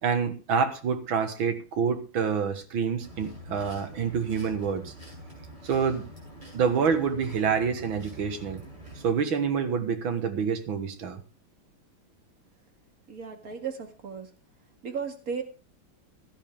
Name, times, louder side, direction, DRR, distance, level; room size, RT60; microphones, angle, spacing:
voice 1, 0.0-4.9 5.6-6.1 6.5-8.6 9.0-11.2, right 6 dB, 70° right, 8 dB, 2.3 m, -27 dB
sound 1, 3.0-9.0, right 1 dB, 20° right, 8.3 m, -46 dB
voice 2, 13.1-14.3 14.8-15.4, right 6 dB, 45° right, 5 dB, 2.3 m, -35 dB
16.0 x 12.0 x 3.5 m, 0.31 s
omnidirectional pair, 2.3 m